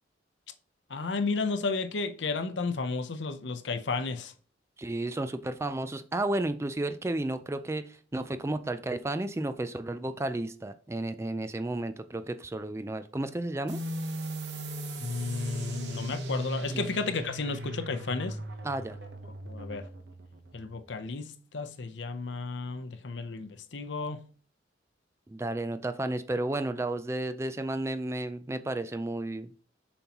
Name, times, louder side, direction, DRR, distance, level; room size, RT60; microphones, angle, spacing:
voice 1, 0.9-4.3 15.0-18.4 19.5-19.8 20.5-24.2, left 4 dB, 75° left, 0.7 m, -33 dB
voice 2, 4.8-13.8 16.7-16.9 18.6-19.0 25.3-29.5, right 2 dB, 15° right, 0.3 m, -32 dB
sound 1, 13.7-20.9, right 1 dB, 65° right, 0.9 m, -38 dB
7.1 x 5.5 x 2.9 m
head